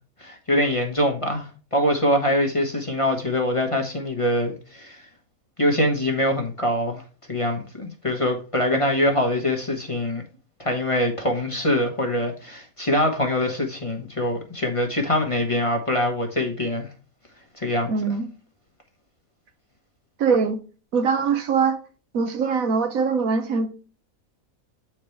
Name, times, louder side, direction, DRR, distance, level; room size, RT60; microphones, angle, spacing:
voice 1, 0.2-5.0 5.6-7.0 7.3-10.2 10.6-16.9 17.6-17.9, left 1 dB, 25° left, 1.1 m, -24 dB
voice 2, 17.9-18.3 20.2-20.6 20.9-21.8 22.1-23.7, right 5 dB, 75° right, 1.4 m, -22 dB
8.4 x 4.5 x 3.2 m
omnidirectional pair, 1.5 m